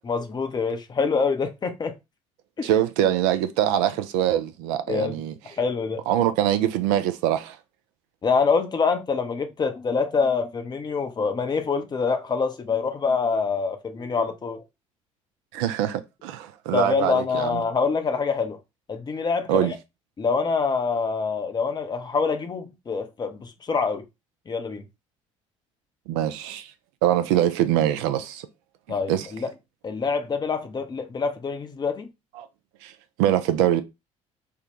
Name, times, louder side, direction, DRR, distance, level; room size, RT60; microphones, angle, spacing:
voice 1, 0.0-1.9 2.6-2.7 4.9-5.2 5.6-6.0 8.2-14.6 16.7-18.6 18.9-19.7 20.2-24.0 24.5-24.9 28.9-29.5 29.8-32.1, left 5 dB, 25° left, 0.6 m, -25 dB
voice 2, 2.6-5.3 6.1-7.6 15.5-17.6 19.5-19.7 26.1-26.7 27.0-28.5 29.1-29.3 32.4-32.5 32.8-32.9 33.2-33.8, right 11 dB, 60° right, 0.4 m, -23 dB
3.5 x 2.2 x 2.8 m
figure-of-eight pair, 55°, 17 cm